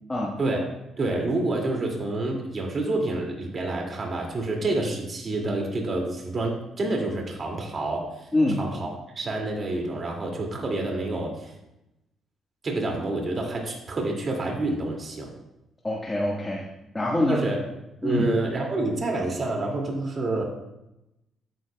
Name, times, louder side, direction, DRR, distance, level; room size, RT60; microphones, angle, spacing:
voice 1, 1.0-8.3 8.6-8.9 9.2-11.5 12.6-15.3 17.3-17.6 18.0-20.4, right 2 dB, 40° right, 0 dB, 2.3 m, -28 dB
voice 2, 8.3-8.6 15.8-16.7 16.9-17.4 18.0-18.3, left 1 dB, 20° left, -4 dB, 1.4 m, -24 dB
12.5 x 9.8 x 2.3 m, 0.90 s
cardioid pair, 90°, 0 cm